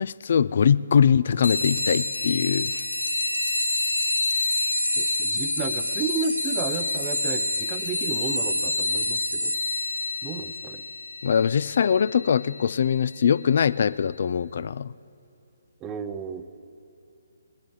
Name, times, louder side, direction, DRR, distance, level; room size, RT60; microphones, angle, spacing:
voice 1, 0.0-2.8 11.2-14.9, left 7 dB, 50° left, 18 dB, 0.3 m, -22 dB
sound 1, 1.4-13.5, left 2 dB, 70° left, 1.1 m, -28 dB
voice 2, 4.9-9.6 10.2-10.8 15.8-16.4, right 5 dB, 15° right, 10 dB, 0.6 m, -32 dB
19.5 x 10.5 x 4.8 m, 2.8 s
figure-of-eight pair, 140°, 0 cm